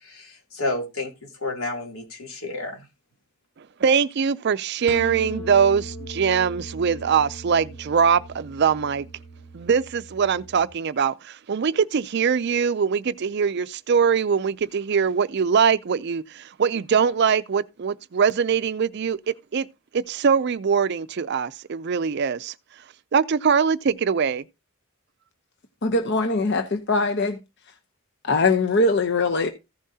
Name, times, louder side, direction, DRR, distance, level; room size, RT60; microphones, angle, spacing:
voice 1, 0.0-2.8, left 2 dB, 85° left, 2.9 m, -31 dB
voice 2, 3.8-9.1 9.5-19.7 19.9-22.5 23.1-24.4, right 6 dB, 50° right, 0.4 m, -22 dB
sound 1, 4.9-10.7, equal, 10° left, 2.6 m, -39 dB
voice 3, 25.8-27.4 28.2-29.5, left 3 dB, 55° left, 0.8 m, -21 dB
15.0 x 7.4 x 2.7 m
head